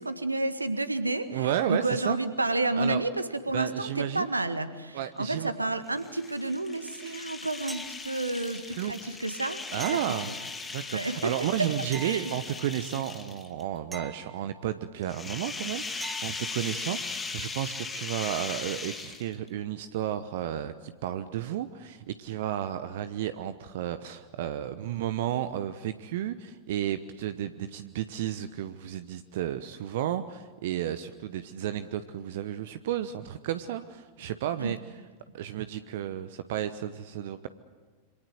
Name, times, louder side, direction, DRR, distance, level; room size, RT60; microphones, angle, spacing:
voice 1, 0.0-9.6 9.9-10.4 10.9-11.3 11.6-11.7 12.0-12.3 34.6-34.8, right 2 dB, 80° right, 11 dB, 1.8 m, -30 dB
voice 2, 1.3-2.2 2.7-3.0 3.5-4.3 4.9-5.5 8.5-8.9 9.7-10.3 10.7-34.8 35.3-37.5, right 11 dB, 55° right, 12 dB, 1.0 m, -32 dB
sound 1, 5.9-13.6 15.0-19.5, left 4 dB, 15° left, 3.0 m, -38 dB
sound 2, 7.7-8.4 9.8-10.9 11.9-12.9 13.9-14.9 16.0-16.6 19.4-19.5, right 3 dB, 10° right, 1.7 m, -44 dB
27.5 x 26.0 x 8.0 m, 1.4 s
figure-of-eight pair, 90°, 0 cm